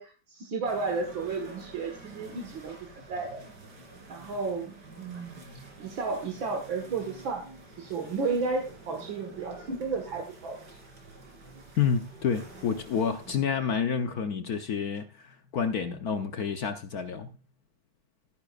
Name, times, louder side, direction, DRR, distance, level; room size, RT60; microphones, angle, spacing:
voice 1, 0.0-2.8 3.1-3.4 4.1-5.4 5.8-7.5 7.8-10.8, right 4 dB, 70° right, 2.4 m, -33 dB
sound 1, 0.6-13.4, right 2 dB, 55° right, 3.6 m, -49 dB
voice 2, 11.8-17.3, left 6 dB, 55° left, 1.2 m, -29 dB
15.0 x 10.0 x 2.5 m
omnidirectional pair, 2.3 m